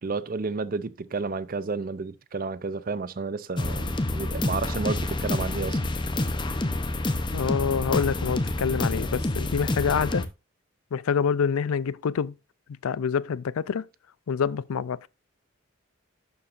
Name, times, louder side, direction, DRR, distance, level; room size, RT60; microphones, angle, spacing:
voice 1, 0.0-5.8, right 4 dB, 40° right, 0.5 m, -31 dB
sound 1, 3.6-10.3, left 2 dB, 20° left, 0.7 m, -28 dB
voice 2, 7.3-10.3 10.9-12.3 12.8-13.8 14.3-15.1, left 6 dB, 80° left, 0.4 m, -26 dB
11.0 x 7.2 x 2.5 m
head